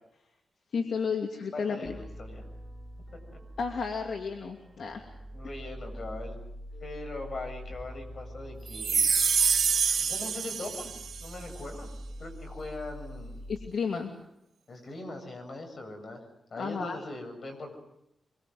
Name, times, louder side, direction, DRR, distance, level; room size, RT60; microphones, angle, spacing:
voice 1, 0.7-1.9 3.6-5.0 13.5-14.1 16.6-17.0, left 5 dB, 70° left, 3 dB, 2.7 m, -32 dB
voice 2, 1.5-2.5 3.3-3.4 5.3-6.4 6.8-9.0 10.0-10.9 11.2-11.9 12.2-13.3 14.7-16.2 16.5-17.8, left 2 dB, 50° left, 5 dB, 7.6 m, -41 dB
sound 1, 1.8-13.6, equal, 20° right, 5.1 m, -44 dB
sound 2, 8.7-11.3, right 6 dB, 60° right, 2.1 m, -26 dB
25.0 x 24.0 x 7.9 m, 0.81 s
wide cardioid pair, 105°, 0 cm